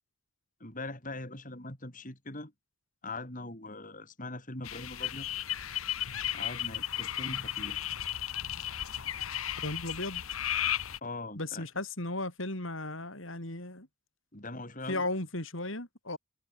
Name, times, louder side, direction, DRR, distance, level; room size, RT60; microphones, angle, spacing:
voice 1, 0.6-2.5 3.0-5.3 6.3-7.9 11.0-11.7 14.3-15.1, left 2 dB, 40° left, 6.4 m, -41 dB
sound 1, 4.6-11.0, left 11 dB, 90° left, 1.3 m, -34 dB
voice 2, 9.6-10.2 11.4-13.9 14.9-16.2, left 2 dB, 70° left, 6.7 m, -35 dB
head